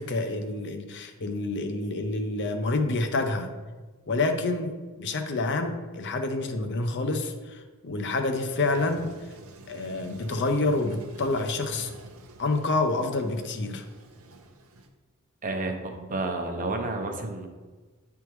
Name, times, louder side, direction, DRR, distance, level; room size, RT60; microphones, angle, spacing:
voice 1, 0.0-3.5 4.1-9.1 9.7-11.9 12.4-13.8, left 2 dB, 55° left, 6 dB, 0.6 m, -28 dB
Toilet flush, 8.5-14.9, right 2 dB, 70° right, 0.6 m, -48 dB
voice 2, 15.4-17.5, right 2 dB, 40° right, 3 dB, 0.7 m, -30 dB
9.5 x 3.5 x 3.1 m, 1.3 s
head